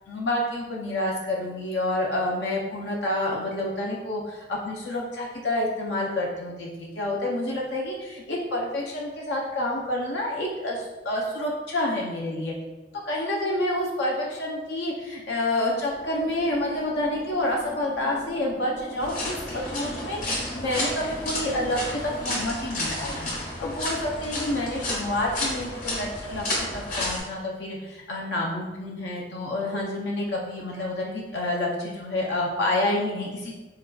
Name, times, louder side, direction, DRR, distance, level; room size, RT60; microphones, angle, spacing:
voice 1, 0.1-12.5 13.0-23.3 23.6-33.5, left 1 dB, 70° left, -2 dB, 0.5 m, -28 dB
sound 1, 15.9-22.5, equal, 10° left, 0.5 m, -41 dB
sound 2, 19.0-27.2, left 1 dB, 45° left, 1.1 m, -31 dB
4.6 x 2.2 x 2.2 m, 1.2 s
head